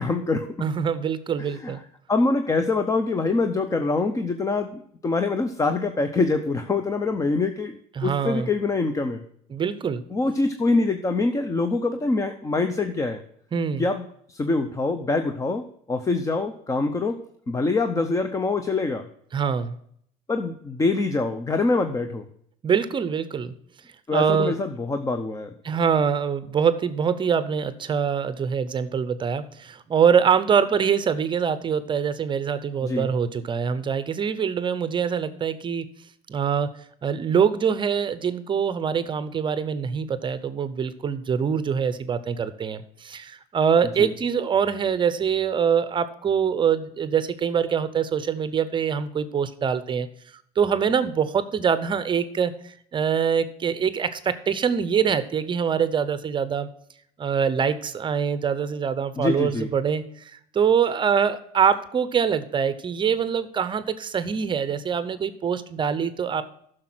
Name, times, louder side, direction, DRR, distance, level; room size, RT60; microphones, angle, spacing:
voice 1, 0.0-0.5 1.4-1.8 2.1-7.8 8.0-9.2 10.1-13.2 13.8-17.2 17.5-19.1 20.3-22.3 24.1-25.5 32.8-33.1 44.0-44.1 59.2-59.7, left 3 dB, 20° left, 8 dB, 0.7 m, -25 dB
voice 2, 0.6-1.8 8.0-8.5 9.5-10.0 13.5-13.8 19.3-19.8 22.6-23.5 24.1-24.6 25.6-35.9 36.3-36.7 37.0-50.1 50.6-56.7 57.2-60.0 60.5-66.4, right 7 dB, 25° right, 13 dB, 0.7 m, -24 dB
10.5 x 6.5 x 6.0 m, 0.68 s
cardioid pair, 130°, 18 cm